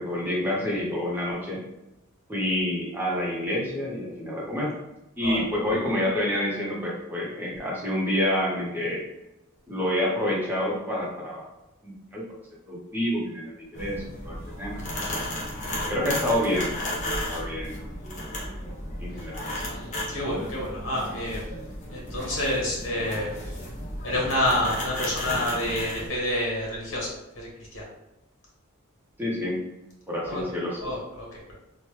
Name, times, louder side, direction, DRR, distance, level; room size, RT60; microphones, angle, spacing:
voice 1, 0.0-1.6 2.3-4.8 5.2-9.1 9.7-11.4 11.8-12.2 12.7-15.2 15.9-17.8 19.0-19.7 29.2-29.6 30.1-30.9, left 1 dB, 10° right, -5 dB, 0.7 m, -28 dB
sound 1, 13.7-26.1, left 1 dB, 35° left, 0.7 m, -34 dB
voice 2, 19.7-21.4 21.9-23.3 24.0-27.1 27.3-27.5 27.7-27.8 30.3-30.4 30.8-31.3, left 1 dB, 70° left, -4 dB, 1.1 m, -28 dB
2.9 x 2.2 x 3.1 m, 0.91 s
head